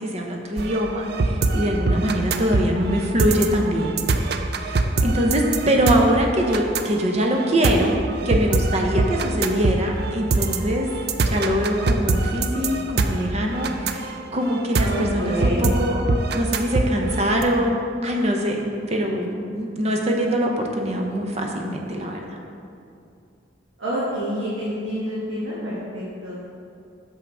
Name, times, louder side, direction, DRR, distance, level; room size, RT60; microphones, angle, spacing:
voice 1, 0.0-10.9 11.2-16.1 16.3-22.4, equal, 35° right, 1 dB, 0.8 m, -23 dB
sound 1, 0.6-17.4, right 3 dB, 55° right, 0.4 m, -24 dB
voice 2, 14.8-15.7 23.8-26.3, equal, 80° right, -8 dB, 1.5 m, -28 dB
6.3 x 5.6 x 4.8 m, 2.5 s
head